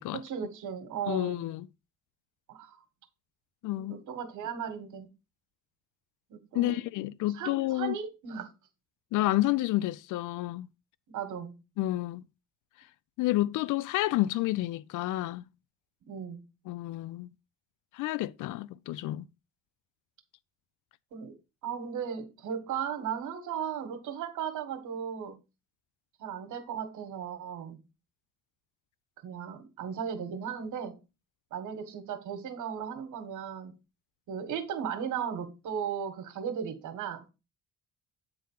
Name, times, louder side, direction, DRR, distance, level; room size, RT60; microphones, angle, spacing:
voice 1, 0.1-1.5 2.5-2.8 3.8-5.1 6.3-6.8 7.3-8.5 11.1-11.6 16.0-16.5 21.1-21.4 21.6-25.4 26.2-27.8 29.2-31.0 31.5-33.8 34.3-37.2, right 7 dB, 80° right, 1.6 m, -36 dB
voice 2, 1.1-1.6 3.6-4.0 6.5-8.0 9.1-10.7 11.8-12.2 13.2-15.4 16.7-17.3 17.9-19.3, left 16 dB, 80° left, 0.5 m, -30 dB
8.8 x 3.8 x 5.5 m
cardioid pair, 90°, 30 cm